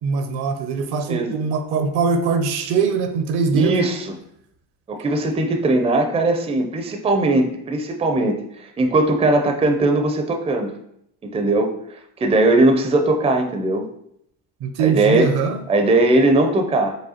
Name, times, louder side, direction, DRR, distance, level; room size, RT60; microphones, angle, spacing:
voice 1, 0.0-3.8 14.6-15.6, right 5 dB, 60° right, 7 dB, 0.6 m, -21 dB
voice 2, 1.1-1.4 3.5-4.1 4.9-10.7 11.2-11.7 12.2-13.9 14.8-15.3 15.7-17.0, right 2 dB, 15° right, 5 dB, 0.4 m, -19 dB
4.8 x 2.2 x 2.8 m, 0.74 s
supercardioid pair, 75°, 44 cm